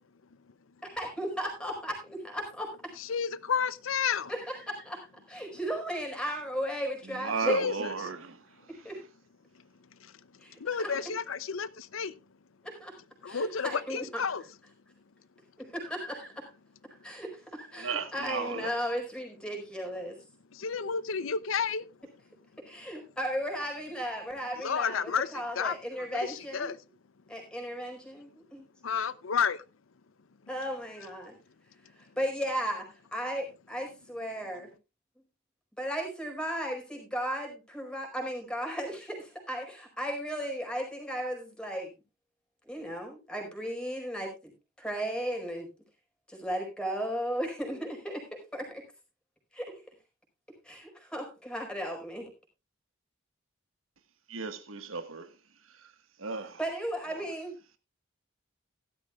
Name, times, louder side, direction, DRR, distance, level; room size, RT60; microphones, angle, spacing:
voice 1, 0.8-2.9 4.3-7.6 8.7-9.0 10.4-11.0 12.6-13.0 13.2-14.2 15.6-16.5 16.8-20.2 22.6-26.7 27.3-28.7 30.5-31.4 32.0-34.7 35.8-41.9 42.6-44.5 44.8-45.7 46.3-48.8 49.5-49.8 50.6-52.3 56.6-57.6, equal, 5° left, 4.5 m, -35 dB
voice 2, 3.1-4.3 7.5-7.7 10.0-10.1 10.6-12.1 13.2-14.4 20.5-21.9 24.6-25.7 26.1-26.8 28.8-29.6, left 6 dB, 80° left, 0.6 m, -31 dB
voice 3, 7.1-8.4 17.7-18.7 54.3-55.3 56.2-56.6, right 4 dB, 90° right, 1.5 m, -34 dB
16.0 x 12.5 x 2.3 m
head